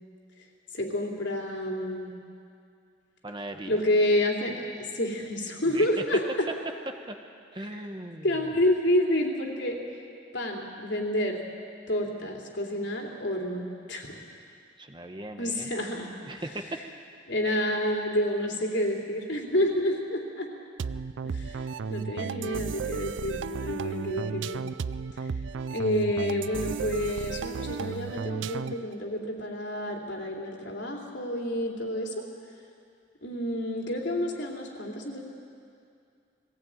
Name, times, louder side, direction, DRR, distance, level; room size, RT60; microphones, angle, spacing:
voice 1, 0.7-2.1 3.7-6.5 7.6-7.8 8.2-9.8 10.3-11.4 11.9-14.1 15.4-16.1 17.3-20.5 21.2-21.6 21.9-24.6 25.1-25.3 25.7-32.2 33.2-35.2, left 1 dB, 70° left, 0 dB, 3.0 m, -29 dB
voice 2, 3.2-3.8 5.7-5.9 7.1-7.2 7.5-8.3 14.8-15.7 16.2-16.8, right 1 dB, 25° right, 6 dB, 1.0 m, -38 dB
sound 1, 20.8-28.9, right 5 dB, 85° right, 0.4 m, -34 dB
20.0 x 15.5 x 9.0 m, 2.4 s
head